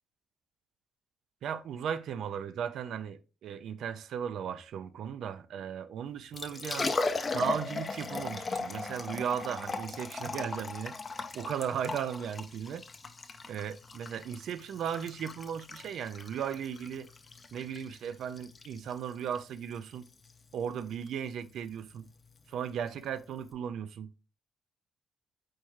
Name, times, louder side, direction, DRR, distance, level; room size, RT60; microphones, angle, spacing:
voice 1, 1.4-7.0 7.3-11.0 11.3-12.8 13.5-17.1 17.5-20.0 20.5-22.1 22.5-24.1, right 8 dB, 75° right, 0.4 m, -36 dB
Liquid, 6.1-23.5, left 3 dB, 35° left, 0.5 m, -38 dB
4.6 x 4.2 x 2.4 m
cardioid pair, 80°, 0 cm